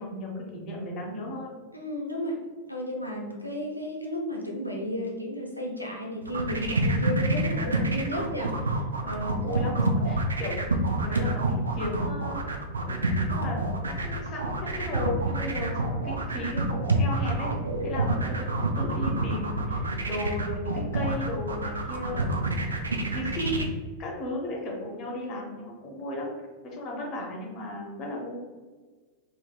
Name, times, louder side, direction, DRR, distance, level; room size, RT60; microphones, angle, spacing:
voice 1, 0.0-1.5 3.1-3.4 9.0-17.5 17.8-26.3 26.6-28.4, left 1 dB, 35° left, -2 dB, 0.9 m, -35 dB
voice 2, 1.7-2.4 2.7-8.8 9.4-9.7 17.8-18.0, left 1 dB, 90° left, -1 dB, 0.6 m, -33 dB
sound 1, 6.2-23.6, right 2 dB, 75° right, 0.3 m, -27 dB
3.0 x 2.8 x 2.3 m, 1.4 s
figure-of-eight pair, 90°, 0 cm